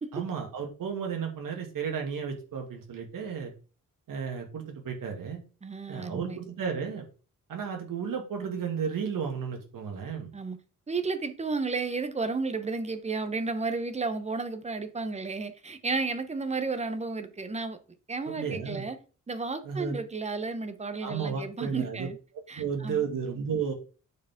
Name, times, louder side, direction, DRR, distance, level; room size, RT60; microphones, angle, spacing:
voice 1, 0.1-3.5 4.1-5.4 5.9-7.1 7.5-10.3 18.3-18.8 19.6-20.0 21.0-22.1 22.3-23.7, right 6 dB, 75° right, 2.3 m, -33 dB
voice 2, 5.6-6.4 10.3-10.6 10.9-17.8 18.1-19.0 19.3-22.2 22.5-23.0, right 4 dB, 20° right, 0.9 m, -32 dB
9.4 x 4.7 x 3.7 m
wide cardioid pair, 170°, 33 cm